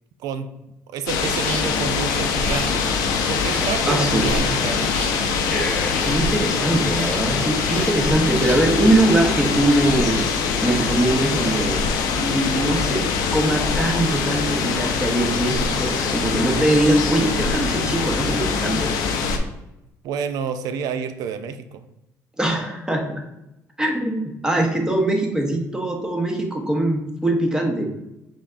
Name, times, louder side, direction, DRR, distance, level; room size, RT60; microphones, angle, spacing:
voice 1, 0.9-2.9 3.3-4.9 20.0-21.8, right 6 dB, 75° right, 10 dB, 0.4 m, -29 dB
sound 1, 1.1-19.4, left 5 dB, 90° left, 0.5 m, -23 dB
sound 2, 1.3-9.2, left 1 dB, 25° left, 1.2 m, -33 dB
voice 2, 3.9-4.3 6.0-10.2 10.6-11.8 12.1-13.0 13.3-18.9 22.4-23.1 23.8-27.9, right 1 dB, 10° right, 2 dB, 0.9 m, -22 dB
5.1 x 3.5 x 2.5 m, 0.88 s
cardioid pair, 90°, 6 cm